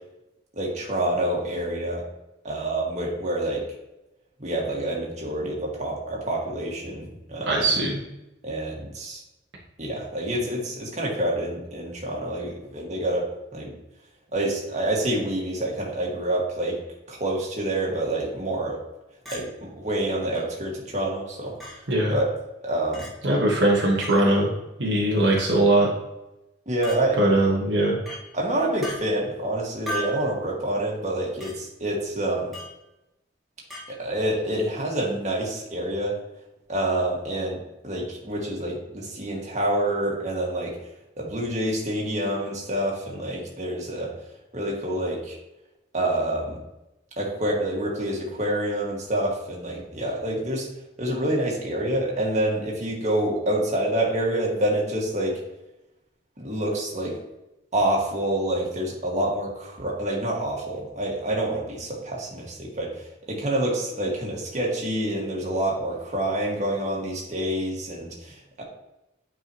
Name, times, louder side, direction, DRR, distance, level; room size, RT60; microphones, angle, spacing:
voice 1, 0.5-2.0 2.4-3.6 4.4-7.7 8.4-9.2 9.8-13.3 13.5-13.7 14.3-16.8 17.1-18.8 19.3-21.8 22.1-22.3 22.6-23.1 26.6-27.2 28.3-32.5 34.0-36.1 36.7-37.6 37.8-40.8 41.2-44.1 44.5-45.4 45.9-46.6 47.2-50.7 51.0-55.4 56.4-57.2 57.7-68.6, right 1 dB, 40° right, -3 dB, 1.8 m, -27 dB
voice 2, 7.5-8.0 21.9-22.2 23.2-24.5 24.8-25.9 27.2-28.0, right 1 dB, 65° right, -3 dB, 1.3 m, -20 dB
Chink clink, 19.3-19.4 20.3-20.4 21.6-21.8 22.9-23.1 24.0-24.2 25.4-25.6 26.8-27.0 28.1-28.2 28.8-29.0 29.9-30.2 31.4-31.5 32.5-32.8 33.7-33.9, equal, ahead, 2.2 m, -35 dB
9.2 x 4.8 x 3.0 m, 0.93 s
head